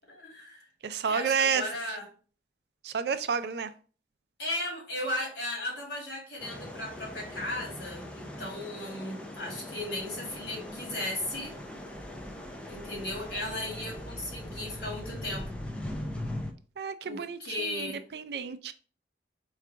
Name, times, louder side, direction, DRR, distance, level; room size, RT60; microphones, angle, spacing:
voice 1, 0.1-0.7 1.0-2.1 4.4-11.6 12.7-15.5 17.1-18.0, left 1 dB, 60° left, 1.9 m, -36 dB
voice 2, 0.8-1.7 2.8-3.7 16.8-18.7, right 6 dB, 60° right, 0.4 m, -30 dB
sound 1, 6.4-16.5, left 1 dB, 5° left, 0.5 m, -40 dB
4.5 x 2.4 x 4.8 m
head